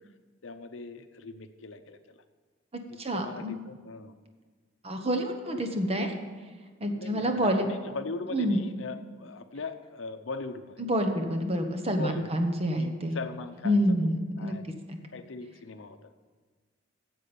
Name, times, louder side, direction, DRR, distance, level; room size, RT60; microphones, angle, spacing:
voice 1, 0.4-2.2 2.9-4.2 7.0-10.8 11.9-12.4 12.8-14.1 14.4-14.6 15.1-16.1, left 3 dB, 75° left, 9 dB, 0.7 m, -40 dB
voice 2, 3.0-3.5 4.8-6.1 6.8-7.7 8.3-8.6 10.8-13.2 13.6-14.5 14.9-15.0, equal, 30° right, 5 dB, 1.1 m, -27 dB
9.6 x 7.5 x 6.9 m, 1.4 s
head